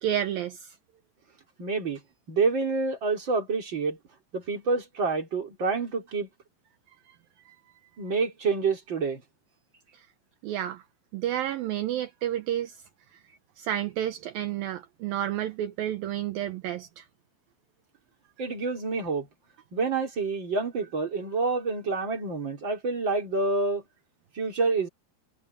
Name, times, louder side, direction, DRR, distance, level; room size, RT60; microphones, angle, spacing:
voice 1, 0.0-0.7 7.1-7.2 10.4-10.8 11.1-12.7 13.6-17.0, right 11 dB, 70° right, 2.3 m, -30 dB
voice 2, 1.6-2.0 2.3-4.0 4.3-6.3 8.0-9.2 18.4-19.3 19.7-23.8 24.4-24.9, right 4 dB, 25° right, 4.3 m, -28 dB
omnidirectional pair, 5.2 m